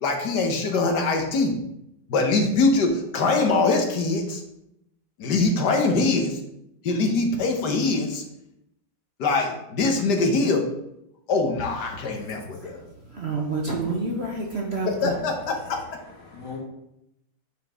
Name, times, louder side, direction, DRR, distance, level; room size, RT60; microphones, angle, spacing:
voice 1, 0.0-1.6 2.1-4.4 5.2-6.4 6.8-8.2 9.2-10.7 11.3-12.8 15.0-15.8, left 3 dB, 60° left, 4 dB, 1.5 m, -23 dB
voice 2, 13.1-15.1, right 3 dB, 50° right, 0 dB, 0.8 m, -28 dB
voice 3, 15.5-16.6, left 5 dB, 80° left, -7 dB, 2.7 m, -42 dB
9.1 x 4.6 x 3.6 m, 0.81 s
omnidirectional pair, 2.2 m